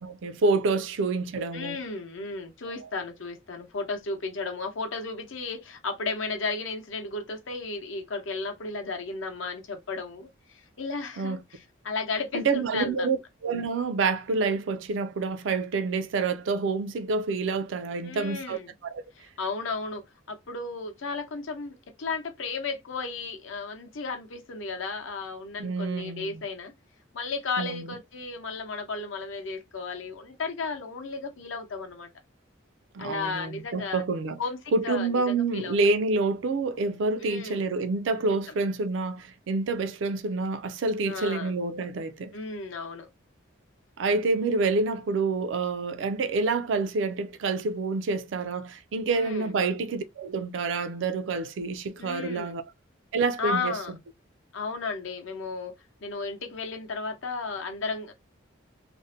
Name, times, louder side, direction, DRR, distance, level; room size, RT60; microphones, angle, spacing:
voice 1, 0.0-1.8 2.7-2.9 11.2-11.4 12.3-13.2 13.4-19.0 25.6-26.4 27.6-27.8 32.9-34.4 34.7-42.3 44.0-52.6 53.1-53.7, right 3 dB, 65° right, 0.4 m, -28 dB
voice 2, 1.5-13.2 18.0-18.7 19.2-26.7 27.1-32.1 33.0-34.0 34.4-35.8 37.2-37.7 38.3-38.5 41.0-41.5 42.3-43.1 49.1-49.5 52.0-52.6 53.4-53.9 54.5-55.7 56.0-58.1, left 4 dB, 75° left, 0.7 m, -34 dB
2.5 x 2.1 x 2.6 m
head